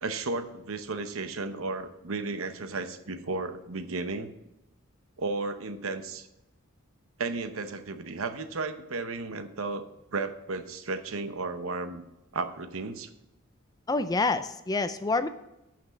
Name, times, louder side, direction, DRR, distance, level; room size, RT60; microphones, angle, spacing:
voice 1, 0.0-4.3 5.2-6.3 7.2-9.9 10.1-12.0 12.3-13.1, right 3 dB, 75° right, 9 dB, 0.8 m, -34 dB
voice 2, 13.9-15.3, left 3 dB, 20° left, 11 dB, 0.4 m, -27 dB
8.8 x 5.9 x 6.3 m, 0.93 s
head